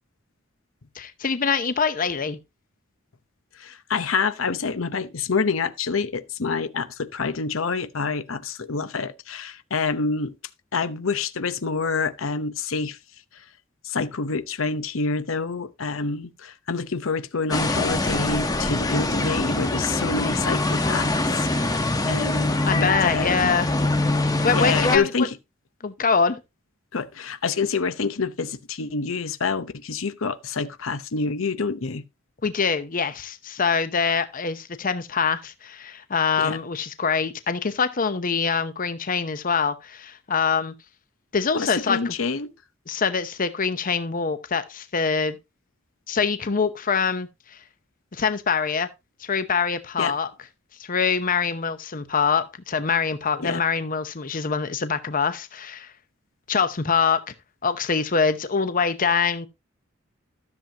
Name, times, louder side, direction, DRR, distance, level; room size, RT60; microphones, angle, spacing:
voice 1, 0.9-2.4 22.6-23.7 24.4-25.1 25.8-26.4 32.4-40.7 41.3-42.1 42.9-45.4 46.1-47.6 48.1-48.9 49.2-50.3 50.8-55.9 56.5-57.2 57.6-59.5, left 5 dB, 45° left, 0.8 m, -24 dB
voice 2, 3.5-10.3 10.7-13.0 13.3-13.4 13.8-23.6 24.5-25.4 26.9-32.0 36.4-36.6 41.5-42.5 50.0-50.1 53.4-53.6, left 4 dB, 80° left, 0.8 m, -27 dB
sound 1, 17.5-25.0, left 2 dB, 20° left, 1.1 m, -24 dB
13.0 x 7.4 x 2.9 m
head